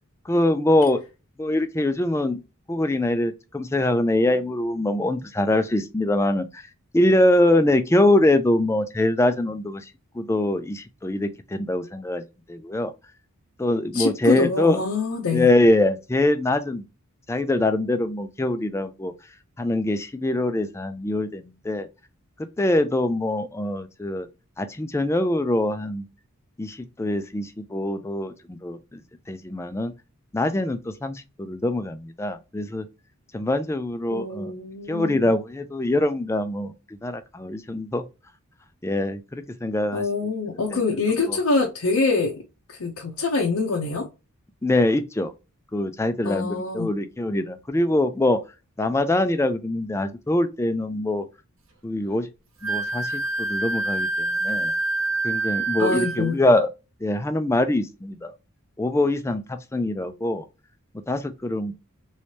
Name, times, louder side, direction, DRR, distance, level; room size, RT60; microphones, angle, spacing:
voice 1, 0.3-1.0 1.4-2.4 2.7-6.6 6.9-9.8 10.2-12.2 12.5-12.9 13.6-14.8 15.3-16.8 17.3-19.1 19.6-21.9 22.6-24.3 24.6-26.0 26.6-29.0 29.3-29.9 30.3-32.9 33.3-34.5 34.9-38.0 38.8-40.3 40.7-40.8 41.3-41.4 44.6-45.3 45.7-48.4 48.8-51.3 51.8-52.3 52.6-54.7 55.2-56.7 57.0-58.3 58.8-60.4 61.1-61.7, left 1 dB, 10° left, 0.3 m, -23 dB
voice 2, 13.9-15.5 34.1-35.3 39.9-42.3 42.8-44.1 46.2-46.9 55.8-56.4, left 3 dB, 80° left, 0.6 m, -25 dB
Wind instrument woodwind instrument, 52.6-56.3, right 2 dB, 65° right, 1.1 m, -26 dB
3.1 x 3.1 x 2.8 m
head